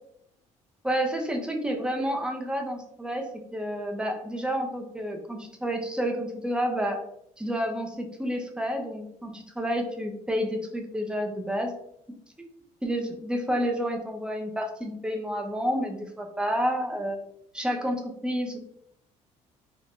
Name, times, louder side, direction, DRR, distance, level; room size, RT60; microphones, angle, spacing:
voice 1, 0.8-7.0 7.4-11.7 12.8-17.2 17.5-18.6, equal, 5° right, 3 dB, 0.5 m, -30 dB
3.4 x 2.1 x 2.5 m, 0.74 s
cardioid pair, 110°, 14 cm